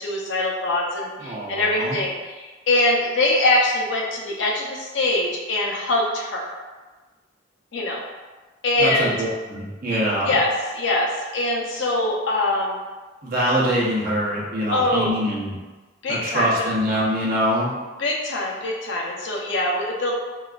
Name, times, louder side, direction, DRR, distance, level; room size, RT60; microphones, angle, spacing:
voice 1, 0.0-6.5 7.7-8.0 8.6-9.1 9.9-10.0 10.3-10.5 10.7-12.7 14.7-15.1 16.0-16.5 18.0-20.1, left 2 dB, 85° left, -2 dB, 0.7 m, -23 dB
voice 2, 1.2-2.0 8.8-10.3 13.2-15.6 16.1-17.7, equal, 50° right, -4 dB, 0.8 m, -24 dB
3.9 x 2.4 x 2.3 m, 1.2 s
head